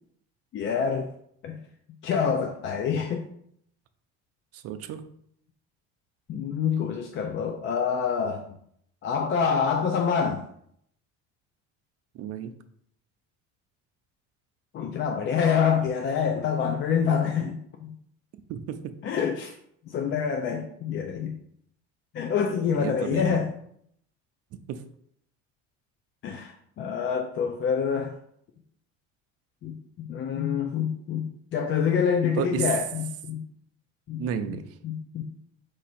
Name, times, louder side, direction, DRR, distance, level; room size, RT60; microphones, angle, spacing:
voice 1, 0.5-1.1 1.4-1.6 2.0-3.3 6.3-8.6 9.0-10.4 14.7-18.0 19.0-19.5 19.9-21.4 22.1-23.5 26.2-28.2 29.6-33.4 34.1-34.2 34.8-35.2, left 6 dB, 35° left, 3 dB, 0.4 m, -26 dB
voice 2, 4.5-5.0 12.1-12.5 18.5-18.8 22.7-23.4 24.7-24.8 32.4-32.7 34.2-34.6, right 8 dB, 50° right, 9 dB, 0.5 m, -32 dB
4.8 x 2.6 x 4.2 m, 0.69 s
cardioid pair, 125°, 32 cm